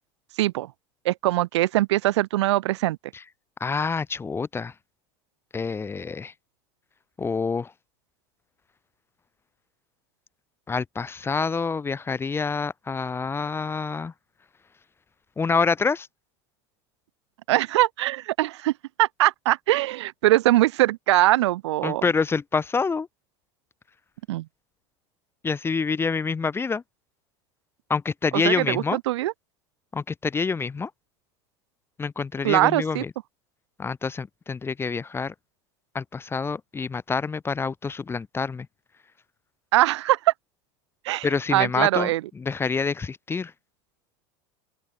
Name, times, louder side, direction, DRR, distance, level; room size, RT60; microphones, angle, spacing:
voice 1, 0.4-0.7 1.0-3.0 17.5-18.7 19.0-22.0 24.3-24.5 28.3-29.3 32.4-33.0 39.7-40.3 41.0-42.2, right 16 dB, 85° right, 0.7 m, -22 dB
voice 2, 3.6-4.7 5.5-6.3 7.2-7.7 10.7-14.1 15.4-16.1 21.8-23.1 25.4-26.8 27.9-29.0 29.9-30.9 32.0-33.1 33.8-35.3 35.9-38.7 41.2-42.1 42.4-43.5, left 5 dB, 15° left, 0.6 m, -27 dB
open air
supercardioid pair, 100°, 14 cm